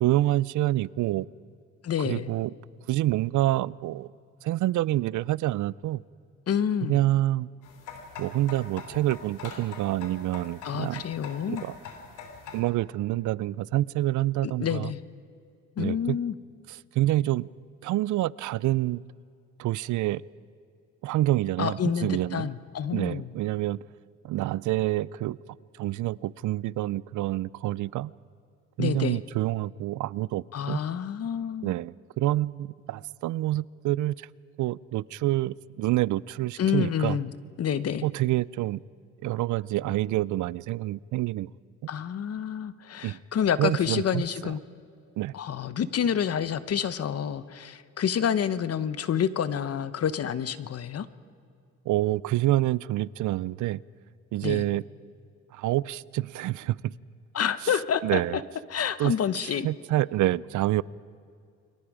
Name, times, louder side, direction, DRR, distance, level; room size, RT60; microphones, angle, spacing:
voice 1, 0.0-1.3 2.0-2.5 2.9-4.1 4.4-6.0 6.9-7.5 8.2-11.0 11.5-11.7 12.5-14.9 15.8-16.2 16.7-17.5 17.8-19.0 19.6-20.2 21.0-22.5 22.9-23.8 24.2-25.4 25.8-28.1 28.8-30.8 31.6-34.3 34.6-37.2 38.0-38.8 39.2-41.5 43.0-43.2 43.6-44.5 45.2-45.3 51.9-53.8 54.3-54.8 55.5-56.9 58.0-58.4 59.0-59.1 59.4-60.8, right 15 dB, 80° right, 22 dB, 0.5 m, -27 dB
voice 2, 1.8-2.3 6.5-7.0 10.6-11.6 14.4-15.0 15.8-16.3 21.6-23.3 28.8-29.2 30.5-31.7 36.6-37.3 37.6-38.0 41.9-44.6 45.3-51.1 54.4-54.7 57.3-58.4 58.7-59.7, left 8 dB, 55° left, 14 dB, 1.1 m, -28 dB
sound 1, 7.6-12.6, left 5 dB, 90° left, 3.3 m, -43 dB
30.0 x 23.0 x 5.0 m, 2.4 s
cardioid pair, 90°, 30 cm